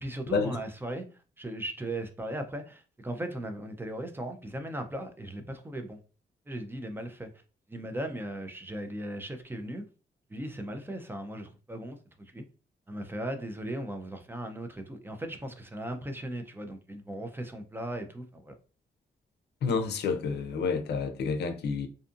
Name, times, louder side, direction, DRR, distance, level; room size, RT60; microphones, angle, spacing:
voice 1, 0.0-1.1 1.4-6.0 6.5-7.3 7.7-9.8 10.3-12.4 12.9-18.5, right 1 dB, 10° right, 0.4 m, -37 dB
voice 2, 19.6-21.9, left 5 dB, 75° left, 0.5 m, -29 dB
2.5 x 2.4 x 2.5 m
cardioid pair, 110°, 17 cm